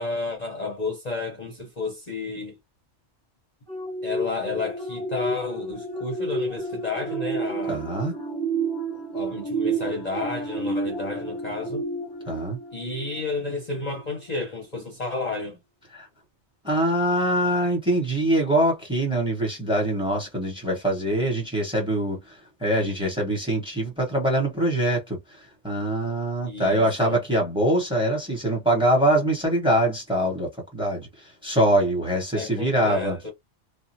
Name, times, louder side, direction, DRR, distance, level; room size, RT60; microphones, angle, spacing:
voice 1, 0.0-2.6 4.0-7.8 9.1-11.8 12.7-15.6 26.4-27.2 32.3-33.3, left 3 dB, 40° left, 0.7 m, -31 dB
sound 1, 3.7-13.5 14.0-14.2, right 3 dB, 25° right, 1.6 m, -31 dB
voice 2, 7.7-8.1 12.3-12.6 15.9-16.1 16.6-25.2 25.6-31.1 31.4-33.2, right 1 dB, 5° right, 0.9 m, -23 dB
2.8 x 2.1 x 2.6 m
omnidirectional pair, 1.2 m